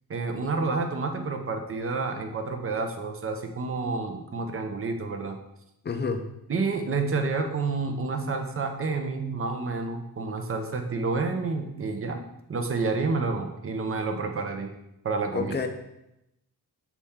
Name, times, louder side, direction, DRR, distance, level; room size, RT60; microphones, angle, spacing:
voice 1, 0.1-5.4 6.5-12.2 12.5-14.7 15.0-15.5, right 4 dB, 35° right, 5 dB, 0.6 m, -29 dB
voice 2, 5.8-6.3 15.3-15.7, left 5 dB, 25° left, 7 dB, 0.5 m, -28 dB
7.1 x 4.2 x 3.6 m, 0.87 s
wide cardioid pair, 155°, 39 cm